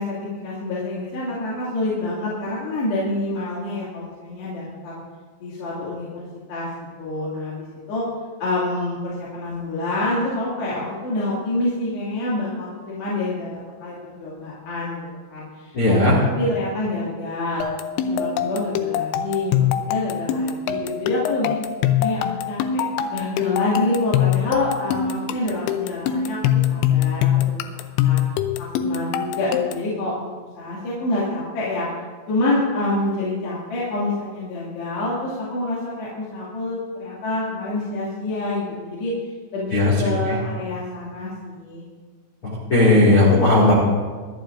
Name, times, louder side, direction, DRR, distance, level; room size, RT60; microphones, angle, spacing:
voice 1, 0.0-5.0 5.4-6.7 7.0-8.0 8.4-17.6 18.0-21.6 22.0-22.2 22.5-22.8 23.1-28.2 28.6-31.9 32.3-39.1 39.5-41.8, left 2 dB, 60° left, -8 dB, 4.2 m, -27 dB
voice 2, 15.7-16.1 39.7-40.4 42.4-43.7, left 2 dB, 45° left, -6 dB, 1.8 m, -16 dB
sound 1, 17.6-29.9, left 10 dB, 90° left, 2.5 m, -23 dB
24.5 x 12.0 x 2.6 m, 1.5 s
omnidirectional pair, 6.0 m